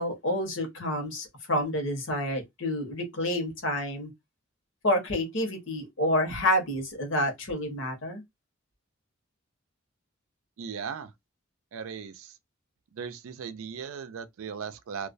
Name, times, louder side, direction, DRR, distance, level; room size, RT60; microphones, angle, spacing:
voice 1, 0.0-4.1 4.8-8.2, left 1 dB, 65° left, 1.0 m, -28 dB
voice 2, 10.6-11.1 11.7-12.3 12.9-15.1, right 6 dB, 90° right, 0.4 m, -37 dB
2.3 x 2.1 x 2.4 m
head